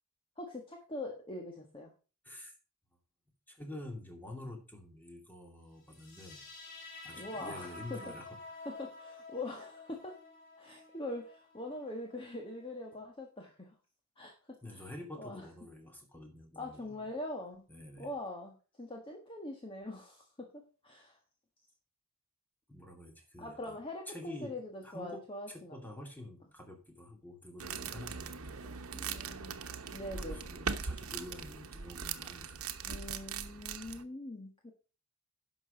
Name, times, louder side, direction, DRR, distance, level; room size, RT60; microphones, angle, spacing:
voice 1, 0.4-1.9 7.2-8.0 8.6-10.2 10.6-13.7 14.2-14.6 15.2-15.5 16.5-17.7 18.0-21.2 23.4-25.8 28.9-29.6 29.9-30.4 32.8-34.7, left 1 dB, 25° left, 1 dB, 1.5 m, -43 dB
voice 2, 2.2-2.6 3.5-6.5 7.0-8.4 14.6-17.1 17.7-18.1 22.7-23.8 24.1-24.6 24.8-25.2 25.5-29.4 30.1-32.6, left 1 dB, 10° left, 2 dB, 2.5 m, -48 dB
sound 1, 5.9-12.9, left 3 dB, 65° left, 3.5 m, -50 dB
sound 2, 27.6-34.0, right 6 dB, 85° right, 1.0 m, -40 dB
11.0 x 6.3 x 5.1 m, 0.35 s
head